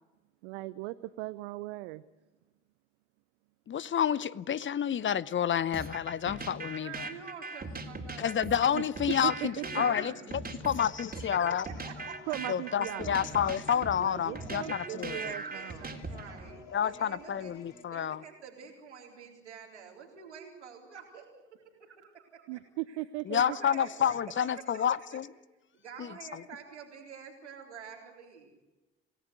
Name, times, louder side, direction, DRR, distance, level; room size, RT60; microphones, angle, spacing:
voice 1, 0.4-2.0 8.7-8.8 9.2-9.6 12.3-13.3 14.0-15.9 22.5-23.6, right 18 dB, 70° right, 0.7 m, -38 dB
voice 2, 3.7-7.1 8.2-11.7 12.5-15.3 16.7-18.2 23.3-25.2 26.0-26.4, left 8 dB, 35° left, 0.8 m, -29 dB
sound 1, 5.7-16.5, right 3 dB, 25° right, 3.5 m, -40 dB
voice 3, 6.7-8.4 9.4-10.6 11.2-12.3 13.2-13.5 14.6-17.5 17.9-22.6 22.9-23.0 23.3-25.2 25.7-28.6, right 6 dB, 85° right, 4.0 m, -48 dB
sound 2, 10.8-17.9, left 4 dB, 65° left, 4.6 m, -52 dB
27.5 x 18.5 x 8.1 m
figure-of-eight pair, 50°, 34 cm